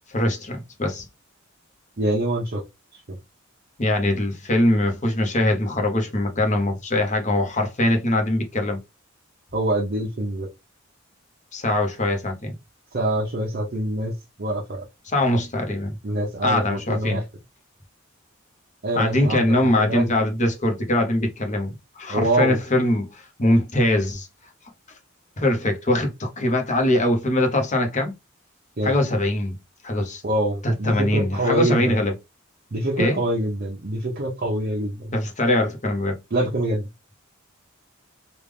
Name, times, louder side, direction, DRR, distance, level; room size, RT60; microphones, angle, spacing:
voice 1, 0.1-1.1 3.8-8.8 11.5-12.5 15.1-16.0 16.4-17.2 18.9-24.3 25.4-28.1 28.8-29.6 29.8-30.2 30.6-32.1 33.0-33.2 35.1-36.2, left 1 dB, 35° left, 1.0 m, -22 dB
voice 2, 2.0-2.6 3.1-3.2 9.5-10.5 12.9-14.1 14.4-14.8 16.0-17.2 18.8-20.1 22.1-22.6 28.8-29.0 30.2-32.0 32.7-35.2 36.3-36.9, right 1 dB, 45° right, 0.8 m, -25 dB
3.4 x 2.5 x 3.4 m
head